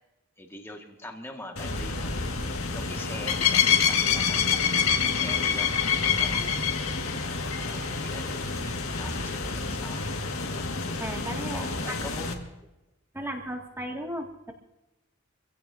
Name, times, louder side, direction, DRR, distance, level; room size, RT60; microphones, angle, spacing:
voice 1, 0.4-2.2 2.7-4.4 5.0-6.5 7.6-10.0 10.5-10.6 11.5-12.5, left 1 dB, 10° left, 2 dB, 1.9 m, -42 dB
sound 1, 1.6-12.3, left 6 dB, 65° left, 2.0 m, -27 dB
voice 2, 11.0-12.0 13.1-14.5, right 1 dB, 10° right, 1 dB, 2.2 m, -35 dB
26.0 x 16.5 x 2.8 m, 0.97 s
head